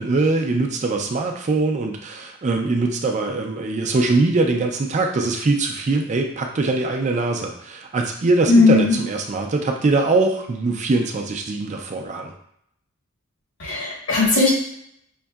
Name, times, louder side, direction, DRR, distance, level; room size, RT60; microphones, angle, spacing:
voice 1, 0.0-12.3, right 3 dB, 35° right, 3 dB, 0.4 m, -22 dB
voice 2, 8.5-8.9 13.6-14.5, left 3 dB, 60° left, -3 dB, 1.3 m, -17 dB
5.3 x 2.6 x 2.3 m, 0.71 s
head